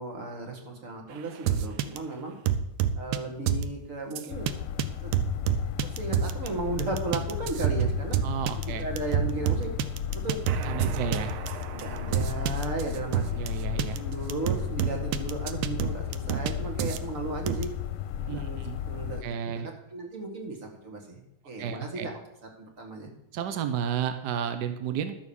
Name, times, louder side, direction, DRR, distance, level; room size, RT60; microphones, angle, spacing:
voice 1, 0.0-2.3 3.0-4.5 5.0-5.1 5.8-8.2 8.8-9.7 10.1-10.4 10.8-11.1 11.7-13.4 13.9-17.7 18.3-18.6 18.9-19.2 19.6-22.2 22.6-23.1, right 3 dB, 40° right, 1 dB, 2.1 m, -35 dB
sound 1, 1.5-2.0 2.5-3.2 3.5-3.7 4.2-4.5 4.8-4.9 5.1-6.5 6.8-13.5 13.8-14.0 14.3-16.5 16.8-17.0 17.5-17.6, right 9 dB, 85° right, 1.6 m, -28 dB
sound 2, 4.3-19.2, left 10 dB, 85° left, 1.5 m, -34 dB
voice 2, 8.2-8.9 10.6-11.3 13.4-14.0 18.2-18.8 19.2-19.7 21.6-22.1 23.3-25.2, right 8 dB, 60° right, 8 dB, 1.3 m, -32 dB
12.0 x 6.5 x 7.0 m, 0.82 s
omnidirectional pair, 2.3 m